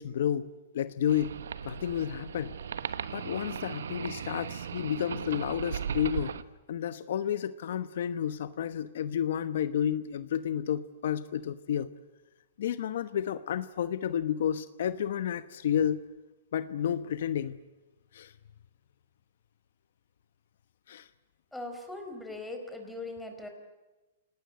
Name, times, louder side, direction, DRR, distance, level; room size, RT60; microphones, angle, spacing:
voice 1, 0.0-1.4 1.6-2.5 3.1-6.4 6.7-11.9 12.6-16.0 16.5-17.6 18.1-18.3 20.9-21.1, left 9 dB, 70° left, 13 dB, 1.1 m, -31 dB
sound 1, 1.1-6.4, right 7 dB, 85° right, 1.2 m, -37 dB
voice 2, 21.5-23.5, left 2 dB, 5° left, 4 dB, 4.3 m, -40 dB
28.0 x 18.5 x 7.8 m, 1.1 s
hypercardioid pair, 145°, 0 cm